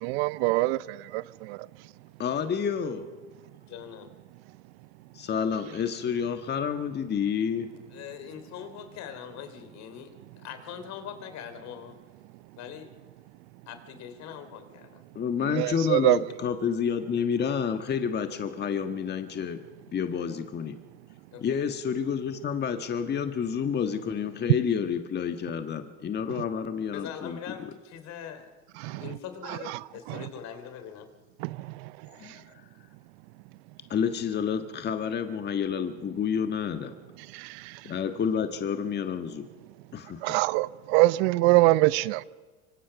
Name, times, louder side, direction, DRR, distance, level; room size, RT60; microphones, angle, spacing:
voice 1, 0.0-1.6 15.5-16.2 28.8-29.0 30.1-30.2 31.4-31.6 37.3-37.6 40.2-42.2, right 20 dB, 65° right, 0.7 m, -24 dB
voice 2, 2.2-3.1 5.1-7.7 15.1-19.6 19.9-20.8 21.4-27.7 32.2-32.4 33.9-36.9 37.8-39.5 39.9-40.3, left 7 dB, 30° left, 1.5 m, -29 dB
voice 3, 3.7-4.1 7.9-12.0 12.6-12.9 13.7-15.0 21.3-21.6 26.9-28.5 28.8-31.1, left 9 dB, 50° left, 3.3 m, -42 dB
25.5 x 24.5 x 6.0 m
hypercardioid pair, 100°, 35 cm